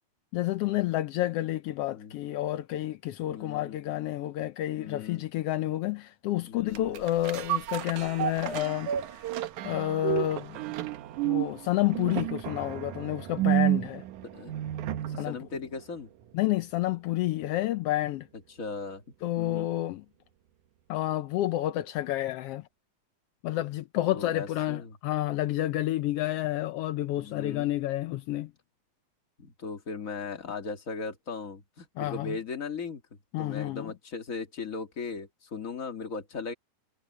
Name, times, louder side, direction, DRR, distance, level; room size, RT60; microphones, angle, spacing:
voice 1, 0.3-8.9 9.6-10.6 11.2-14.0 15.1-15.4 16.3-18.3 19.2-20.0 20.9-22.7 23.4-28.5 32.0-32.4 33.3-33.9, left 15 dB, 85° left, 1.3 m, -30 dB
voice 2, 3.3-3.8 4.7-5.2 6.5-7.0 14.2-14.5 15.1-16.1 18.6-19.0 19.4-19.7 24.0-24.9 27.2-27.7 29.4-33.0 33.4-36.5, left 4 dB, 30° left, 2.1 m, -38 dB
sound 1, 6.7-15.3 15.7-15.8, right 13 dB, 80° right, 2.5 m, -31 dB
omnidirectional pair, 3.5 m